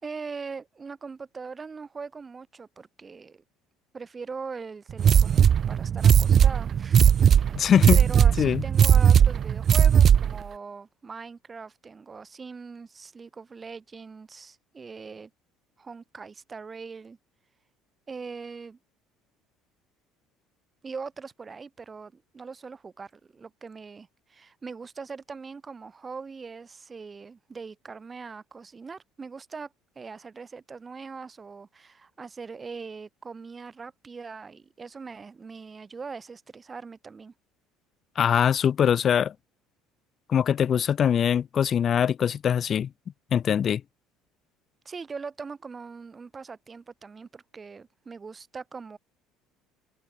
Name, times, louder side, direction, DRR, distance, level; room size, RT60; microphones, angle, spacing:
voice 1, 0.0-3.4 3.9-5.4 5.7-7.6 7.9-15.3 15.8-17.2 18.1-18.8 20.8-37.3 44.8-49.0, right 5 dB, 30° right, 5.8 m, -41 dB
sound 1, 5.0-10.4, right 8 dB, 45° right, 0.6 m, -18 dB
voice 2, 7.5-8.0 8.4-8.6 38.2-39.3 40.3-42.9 43.3-43.8, left 8 dB, 45° left, 0.6 m, -22 dB
open air
supercardioid pair, 80°, 0 cm